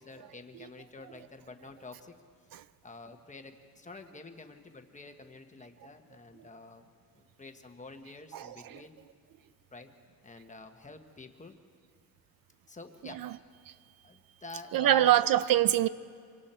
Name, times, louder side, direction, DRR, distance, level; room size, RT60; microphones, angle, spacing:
voice 1, 0.0-2.1 2.8-9.0 9.7-9.9 10.2-11.6 12.7-13.2 14.0-15.1, left 3 dB, 20° left, 1.1 m, -49 dB
voice 2, 8.3-8.8 13.1-13.3 13.7-13.8 14.7-15.9, right 12 dB, 70° right, 0.6 m, -25 dB
26.0 x 24.5 x 4.4 m
wide cardioid pair, 175°, 36 cm